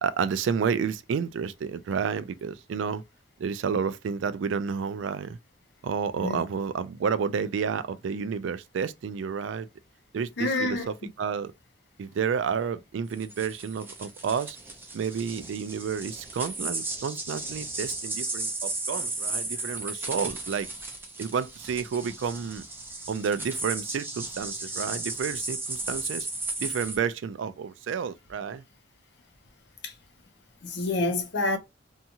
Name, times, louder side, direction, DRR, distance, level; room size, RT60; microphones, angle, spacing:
voice 1, 0.0-3.0 3.4-5.4 5.8-9.7 10.1-11.5 12.0-14.6 14.9-20.7 21.2-22.6 23.1-26.3 26.6-28.6, right 6 dB, 75° right, 0.3 m, -30 dB
voice 2, 10.4-10.9 19.6-19.7 29.8-29.9 30.6-31.6, left 2 dB, 65° left, 0.7 m, -28 dB
sound 1, 13.1-27.0, right 2 dB, 10° right, 0.6 m, -35 dB
2.7 x 2.3 x 2.7 m
head